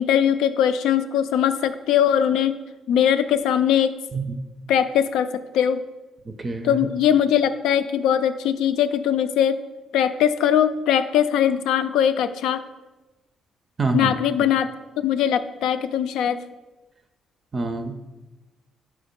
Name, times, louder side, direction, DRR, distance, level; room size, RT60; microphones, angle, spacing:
voice 1, 0.0-2.6 2.9-3.9 4.7-5.8 6.6-9.6 9.9-12.6 13.9-14.7 15.0-16.4, left 9 dB, 90° left, 10 dB, 0.3 m, -21 dB
voice 2, 4.1-4.4 6.3-6.8 13.8-14.2 17.5-17.9, right 3 dB, 35° right, 8 dB, 0.5 m, -26 dB
4.8 x 4.4 x 5.1 m, 1.1 s
cardioid pair, 90°, 0 cm